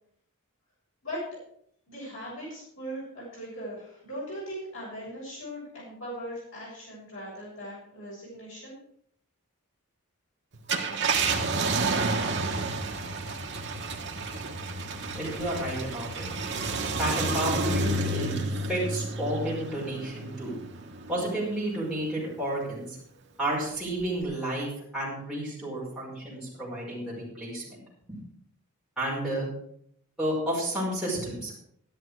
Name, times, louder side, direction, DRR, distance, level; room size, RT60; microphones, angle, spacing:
voice 1, 1.9-8.8, equal, 60° left, -6 dB, 6.9 m, -39 dB
Car, 10.5-21.4 21.9-22.0 24.0-24.2, right 3 dB, 50° right, 1.4 m, -30 dB
voice 2, 15.2-16.3 17.0-18.4 18.7-20.5 21.1-23.0 23.4-27.8 28.1-28.2 29.0-29.5 30.2-31.6, right 1 dB, 5° right, -9 dB, 5.3 m, -31 dB
12.5 x 11.0 x 4.8 m, 0.67 s
head